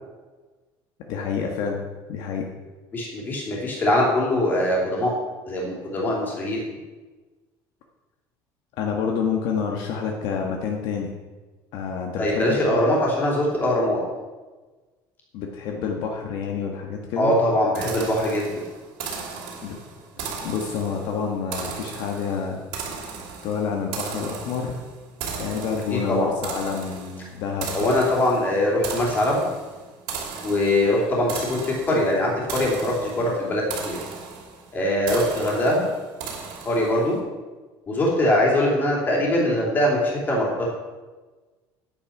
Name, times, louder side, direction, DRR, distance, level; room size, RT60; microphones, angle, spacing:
voice 1, 1.1-1.8 2.1-2.5 8.8-11.1 11.7-12.9 15.3-17.4 19.6-19.8 20.4-22.6 23.4-24.7 25.4-27.9, left 6 dB, 60° left, 1 dB, 1.4 m, -28 dB
voice 2, 2.9-5.1 5.5-6.6 12.2-14.0 17.2-18.5 25.9-26.3 27.7-29.4 30.4-34.0 34.7-35.8 36.6-37.2 37.9-40.7, left 1 dB, 20° left, -2 dB, 3.0 m, -22 dB
sound 1, 17.8-37.1, right 5 dB, 65° right, 2.6 m, -36 dB
10.0 x 8.8 x 5.9 m, 1.3 s
cardioid pair, 180°, 9 cm